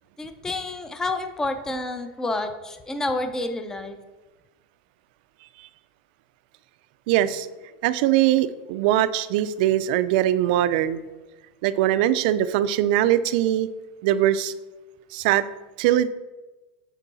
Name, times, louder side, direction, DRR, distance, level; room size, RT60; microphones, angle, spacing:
voice 1, 0.2-4.0, left 2 dB, 10° left, 8 dB, 0.5 m, -29 dB
voice 2, 7.1-7.5 7.8-11.0 11.6-13.7 14.0-14.5 15.1-15.4 15.8-16.1, right 12 dB, 60° right, 14 dB, 0.4 m, -21 dB
8.2 x 4.6 x 4.1 m, 1.2 s
supercardioid pair, 145°, 5 cm